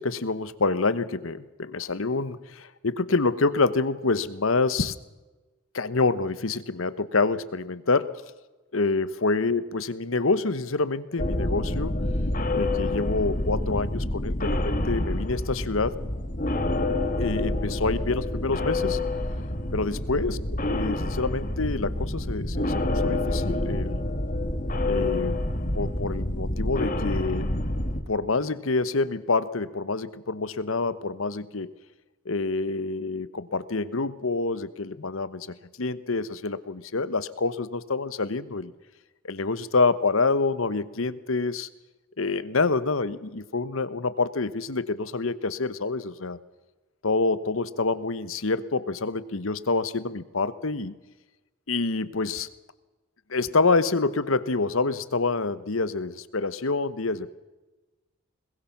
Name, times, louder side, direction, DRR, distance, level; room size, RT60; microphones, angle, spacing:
voice 1, 0.0-4.9 5.7-8.2 8.7-11.9 12.5-16.0 17.2-19.0 19.7-20.4 20.7-24.0 24.9-25.4 25.7-27.5 28.1-31.7 32.2-38.7 39.2-41.7 42.2-46.4 47.0-51.0 51.7-52.5 53.3-57.3, left 3 dB, 70° left, 15 dB, 1.0 m, -27 dB
sound 1, 11.2-28.0, left 1 dB, 40° left, 1.8 m, -28 dB
21.5 x 21.0 x 6.0 m, 1.2 s
head